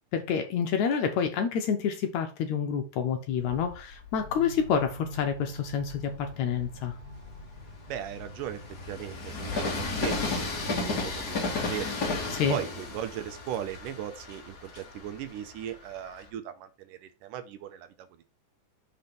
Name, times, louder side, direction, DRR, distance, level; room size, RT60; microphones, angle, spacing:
voice 1, 0.1-7.0 12.3-12.6, left 7 dB, 70° left, 2.0 m, -28 dB
Train, 3.4-5.1 5.7-16.3, left 3 dB, 40° left, 1.4 m, -34 dB
sound 1, 4.2-11.0, left 1 dB, 30° right, 0.7 m, -46 dB
voice 2, 7.9-8.6 8.9-11.9 12.5-18.2, right 10 dB, 75° right, 2.3 m, -38 dB
6.1 x 4.2 x 5.2 m
omnidirectional pair, 3.9 m